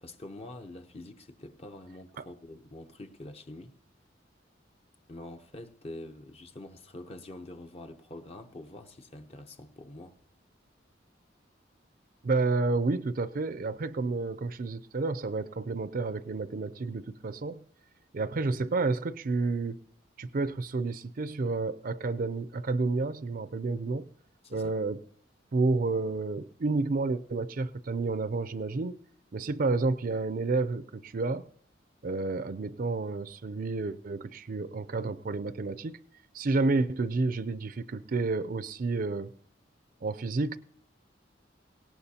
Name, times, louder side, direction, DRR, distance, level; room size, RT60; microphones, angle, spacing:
voice 1, 0.0-3.7 5.1-10.2 24.4-24.7, left 1 dB, 35° left, 0.7 m, -45 dB
voice 2, 12.2-17.6 18.1-19.8 20.2-24.1 24.5-25.0 25.5-29.0 29.3-31.4 32.0-36.0 36.3-39.3 40.0-40.6, right 3 dB, 50° right, 0.5 m, -30 dB
18.0 x 18.0 x 2.8 m
head